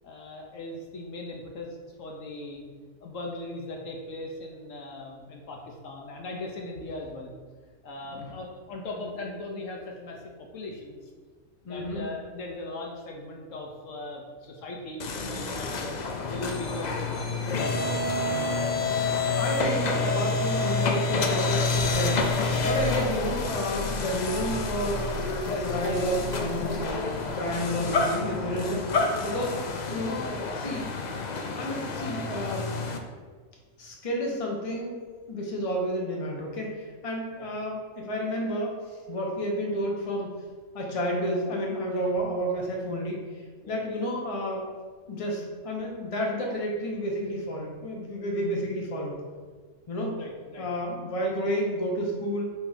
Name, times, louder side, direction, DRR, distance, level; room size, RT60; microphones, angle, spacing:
voice 1, 0.0-2.6 3.0-7.3 7.8-11.0 11.6-16.0 16.3-17.4 37.3-37.5 43.6-43.7 50.1-50.7, left 2 dB, 65° left, 0 dB, 1.1 m, -39 dB
voice 2, 11.7-12.0 18.1-18.6 18.8-29.6 29.9-31.1 31.6-32.7 33.8-35.0 35.3-38.8 39.1-40.4 40.7-43.2 43.7-44.6 45.1-49.2 49.9-50.2 50.6-52.4, equal, 30° left, -1 dB, 0.9 m, -31 dB
sound 1, 15.0-33.0, left 3 dB, 85° left, 0.3 m, -28 dB
5.9 x 3.2 x 5.0 m, 1.5 s
omnidirectional pair, 1.5 m